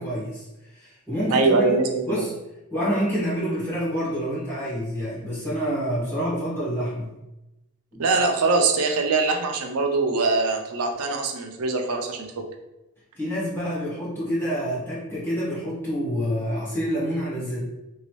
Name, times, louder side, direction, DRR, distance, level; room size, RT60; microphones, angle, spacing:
voice 1, 0.0-1.8 2.0-2.3 2.7-7.1 7.9-8.0 13.1-17.6, equal, 10° left, -9 dB, 1.4 m, -27 dB
voice 2, 1.3-2.2 8.0-12.5, right 3 dB, 80° right, 3 dB, 0.5 m, -23 dB
3.0 x 2.7 x 3.0 m, 0.97 s
head